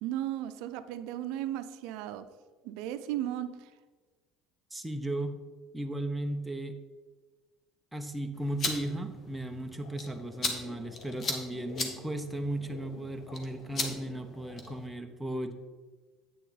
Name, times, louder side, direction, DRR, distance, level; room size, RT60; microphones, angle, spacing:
voice 1, 0.0-2.3 2.6-3.7, right 12 dB, 75° right, 11 dB, 0.5 m, -35 dB
voice 2, 4.7-5.4 5.7-6.8 7.9-15.5, right 1 dB, 5° right, 5 dB, 0.6 m, -36 dB
sound 1, 8.3-14.9, left 3 dB, 35° left, 1.1 m, -38 dB
sound 2, 9.8-14.8, left 5 dB, 70° left, 0.9 m, -50 dB
8.5 x 6.4 x 4.0 m, 1.4 s
cardioid pair, 140°, 0 cm